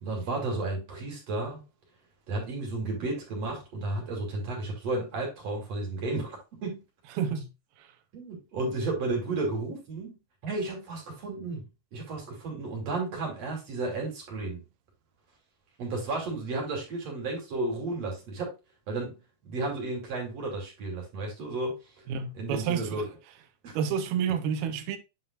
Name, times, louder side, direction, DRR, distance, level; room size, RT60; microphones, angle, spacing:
voice 1, 0.0-1.6 2.3-6.8 8.1-11.7 11.9-14.6 15.8-18.5 18.9-19.2 19.4-21.8 22.4-23.1 23.6-23.7, right 2 dB, 45° right, 3.7 m, -33 dB
voice 2, 7.2-7.5 7.8-7.9 22.1-23.0 23.7-25.0, right 7 dB, 85° right, 2.9 m, -29 dB
9.4 x 5.7 x 2.4 m
omnidirectional pair, 4.4 m